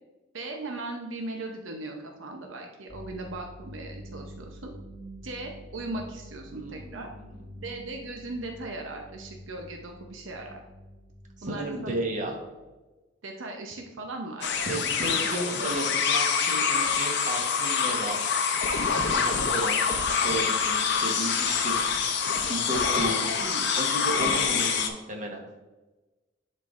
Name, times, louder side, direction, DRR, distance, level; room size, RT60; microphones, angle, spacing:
voice 1, 0.3-4.7 5.2-7.1 7.6-10.6 11.4-12.0 13.2-15.7 23.2-23.7 24.2-24.4, right 2 dB, 80° right, 2 dB, 0.7 m, -38 dB
sound 1, 2.9-12.5, equal, 40° left, 1.6 m, -47 dB
voice 2, 6.5-7.2 7.5-7.6 11.4-12.4 14.7-18.3 19.1-21.7 22.4-23.2 23.8-25.4, right 1 dB, 40° right, 1 dB, 1.1 m, -34 dB
sound 2, 14.4-24.9, left 6 dB, 65° left, 0.7 m, -26 dB
10.5 x 4.5 x 2.5 m, 1.1 s
head